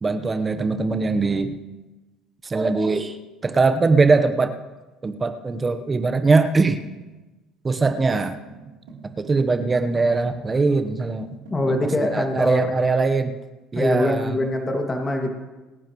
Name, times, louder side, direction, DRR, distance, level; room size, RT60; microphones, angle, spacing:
voice 1, 0.0-1.6 2.4-3.2 3.4-4.5 5.0-6.8 7.6-8.4 9.0-11.3 11.7-13.3 13.7-14.4, right 3 dB, 25° right, 8 dB, 1.1 m, -21 dB
sound 1, 7.9-12.0, right 5 dB, 85° right, 3.4 m, -44 dB
voice 2, 11.5-12.8 13.7-15.3, left 1 dB, 25° left, 2 dB, 2.2 m, -23 dB
24.5 x 10.0 x 3.2 m, 1.1 s
supercardioid pair, 80°, 0 cm